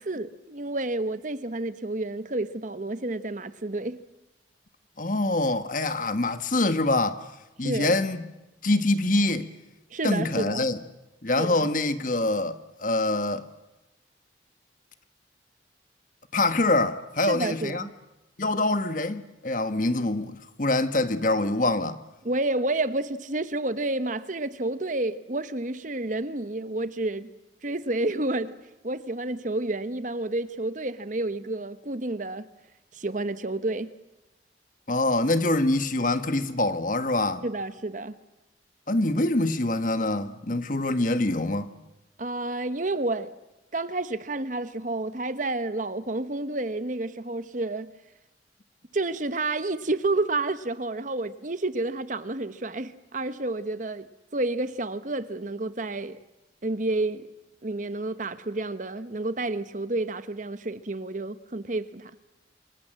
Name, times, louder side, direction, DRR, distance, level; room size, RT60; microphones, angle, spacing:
voice 1, 0.0-4.0 7.6-7.9 9.9-10.7 11.4-11.7 17.2-17.9 22.2-27.3 27.6-28.6 28.8-32.4 32.9-33.9 37.4-38.2 42.2-43.3 43.7-47.9 48.9-56.2 56.6-57.3 57.6-62.1, right 2 dB, 45° right, 1.0 m, -30 dB
voice 2, 5.0-7.3 7.6-8.2 8.6-9.5 10.0-10.8 11.2-13.4 16.3-17.9 18.4-22.0 34.9-37.4 38.9-41.7, left 2 dB, 45° left, 1.4 m, -25 dB
28.0 x 24.0 x 7.6 m
head